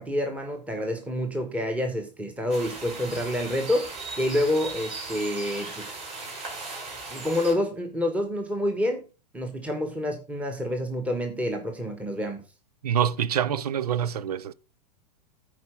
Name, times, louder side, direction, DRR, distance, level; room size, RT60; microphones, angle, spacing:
voice 1, 0.0-3.9 4.2-6.0 7.1-9.0 9.3-12.4, left 1 dB, 5° right, 1.5 m, -28 dB
sound 1, 2.5-7.5, right 3 dB, 30° right, 5.3 m, -37 dB
voice 2, 12.8-14.5, right 9 dB, 65° right, 0.6 m, -26 dB
9.3 x 4.8 x 6.0 m
figure-of-eight pair, 100°, 21 cm